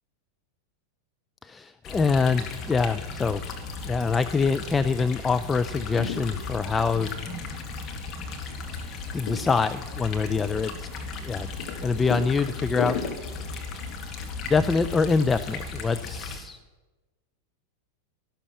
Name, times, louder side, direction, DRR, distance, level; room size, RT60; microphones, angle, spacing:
voice 1, 1.4-3.4 3.8-7.1 9.1-10.7 11.3-11.5 11.8-13.0 14.4-16.6, left 4 dB, 15° left, 10 dB, 0.5 m, -25 dB
sound 1, 1.8-16.4, left 4 dB, 30° left, 2.0 m, -36 dB
sound 2, 5.7-15.3, left 5 dB, 50° left, 2.0 m, -39 dB
13.5 x 12.5 x 6.8 m, 1.2 s
figure-of-eight pair, 90°, 0 cm